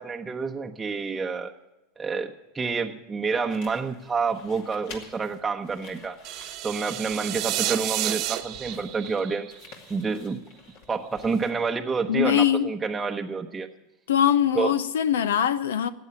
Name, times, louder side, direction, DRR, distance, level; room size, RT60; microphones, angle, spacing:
voice 1, 0.0-1.5 2.0-6.2 6.6-9.5 9.9-10.4 10.9-13.7 14.6-14.8, right 5 dB, 20° right, 0.8 m, -28 dB
sound 1, 3.5-11.9, left 5 dB, 65° left, 2.4 m, -50 dB
sound 2, 6.2-10.3, right 14 dB, 55° right, 1.0 m, -31 dB
voice 2, 12.1-12.7 14.1-15.9, left 9 dB, 80° left, 0.5 m, -22 dB
14.0 x 8.9 x 9.2 m
hypercardioid pair, 95°, 0 cm